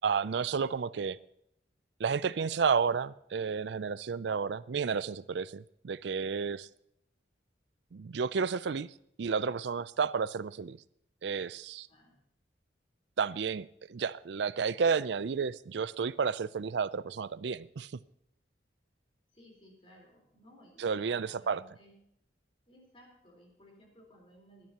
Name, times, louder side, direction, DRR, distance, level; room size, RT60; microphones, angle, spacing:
voice 1, 0.0-1.2 2.0-6.7 7.9-10.8 11.2-11.9 13.2-18.0 20.8-21.6, right 5 dB, 70° right, 18 dB, 0.4 m, -31 dB
voice 2, 11.9-12.2 19.3-22.0 22.7-24.7, equal, 30° left, 0 dB, 4.1 m, -59 dB
21.0 x 10.5 x 2.9 m, 0.74 s
head